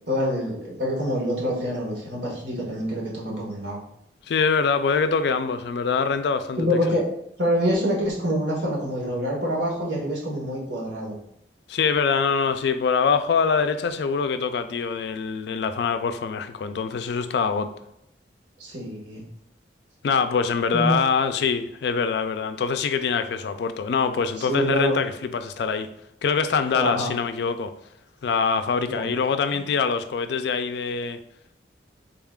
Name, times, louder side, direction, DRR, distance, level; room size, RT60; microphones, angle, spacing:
voice 1, 0.1-3.8 6.6-7.0 7.4-11.2 18.6-19.2 20.7-21.0 24.4-25.0 26.7-27.1 28.8-29.1 29.5-29.6, equal, 80° right, -3 dB, 1.3 m, -26 dB
voice 2, 4.3-6.7 11.7-17.7 20.0-25.9 26.2-27.7 28.2-31.2, left 5 dB, 65° left, 10 dB, 0.3 m, -24 dB
3.7 x 2.4 x 3.5 m, 0.78 s
head